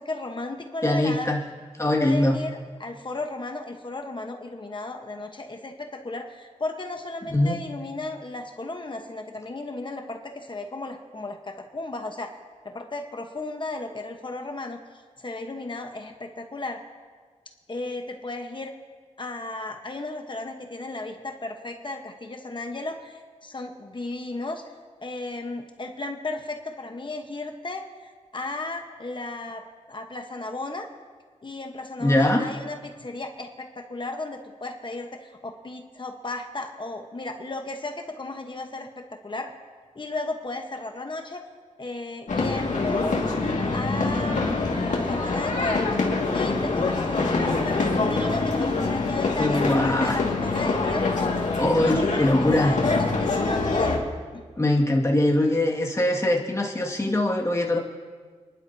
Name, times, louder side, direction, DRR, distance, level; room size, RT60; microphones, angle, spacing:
voice 1, 0.0-1.3 2.0-12.3 12.6-14.8 15.2-16.8 17.7-18.7 19.2-24.6 25.0-30.9 31.4-39.5 39.9-41.4 41.8-43.2 43.7-45.9 46.3-51.1 51.6-54.0 54.3-54.4, left 2 dB, 40° left, 4 dB, 1.1 m, -34 dB
voice 2, 0.8-1.4 1.8-2.3 7.3-7.6 32.0-32.5 49.4-50.2 51.6-52.7 54.6-57.8, left 1 dB, 25° left, -1 dB, 2.0 m, -22 dB
sound 1, 42.3-54.0, left 3 dB, 85° left, 2.1 m, -25 dB
28.5 x 11.5 x 2.8 m, 1.5 s
wide cardioid pair, 85°, 12 cm